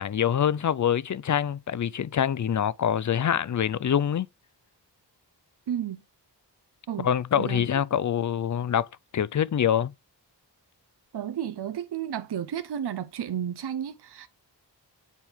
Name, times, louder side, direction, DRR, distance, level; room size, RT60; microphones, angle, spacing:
voice 1, 0.0-4.3 7.0-8.9 9.1-9.9, left 9 dB, 45° left, 0.4 m, -25 dB
voice 2, 5.7-6.0 6.9-7.1 7.3-7.7 11.1-14.3, right 9 dB, 65° right, 0.6 m, -32 dB
8.3 x 4.5 x 3.5 m
cardioid pair, 55°, 42 cm